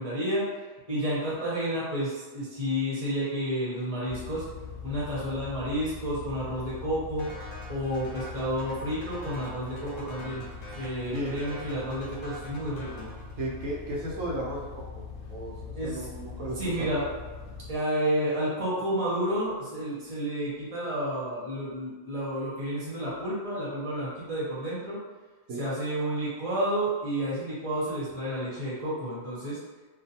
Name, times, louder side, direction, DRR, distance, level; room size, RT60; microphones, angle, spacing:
voice 1, 0.0-4.4 4.8-7.3 7.7-10.4 10.7-13.1 15.7-16.1 16.6-17.1 17.7-25.0 25.5-29.6, equal, 30° right, -7 dB, 0.8 m, -30 dB
sound 1, 4.1-17.8, left 4 dB, 60° left, 0.9 m, -42 dB
sound 2, 7.2-13.9, equal, 80° left, 1.0 m, -46 dB
voice 2, 11.1-11.5 13.4-15.0 15.3-15.6 15.8-16.9 25.5-25.6, right 1 dB, 80° right, -4 dB, 1.0 m, -34 dB
2.5 x 2.2 x 2.7 m, 1.3 s
omnidirectional pair, 1.4 m